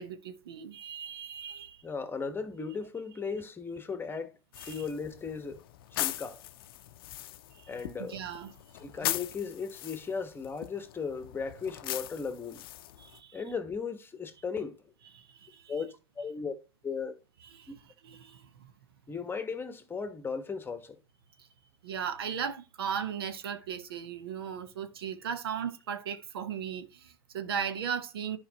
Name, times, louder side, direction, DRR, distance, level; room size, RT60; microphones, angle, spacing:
voice 1, 0.0-1.8 4.6-4.7 7.5-7.7 8.0-8.5 13.0-13.4 15.1-15.7 17.5-17.7 18.0-18.7 21.8-28.4, right 7 dB, 80° right, 1.0 m, -37 dB
voice 2, 1.8-4.4 4.7-5.6 5.9-6.4 7.7-8.2 8.8-12.7 13.3-14.9 15.7-16.5 16.8-17.2 17.7-17.8 19.1-21.0, left 5 dB, 15° left, 1.2 m, -36 dB
sound 1, 4.5-13.2, left 15 dB, 70° left, 0.5 m, -40 dB
11.0 x 5.0 x 2.9 m
hypercardioid pair, 95°, 13 cm